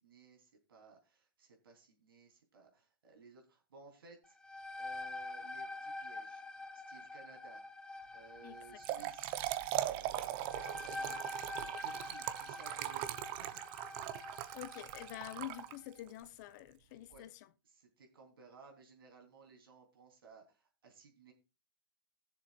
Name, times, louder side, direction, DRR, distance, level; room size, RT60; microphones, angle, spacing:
voice 1, 0.0-4.4 4.8-6.4 6.7-7.7 8.1-9.4 9.8-11.2 11.6-13.6 17.1-17.2 17.6-21.3, right 4 dB, 85° right, 3.4 m, -59 dB
sound 1, 4.2-15.7, left 2 dB, 5° left, 0.7 m, -47 dB
Trickle dribble / Fill (with liquid), 8.6-16.1, right 14 dB, 45° right, 0.8 m, -40 dB
voice 2, 14.5-17.3, left 14 dB, 55° left, 0.8 m, -47 dB
19.5 x 7.0 x 2.4 m
hypercardioid pair, 115°, 12 cm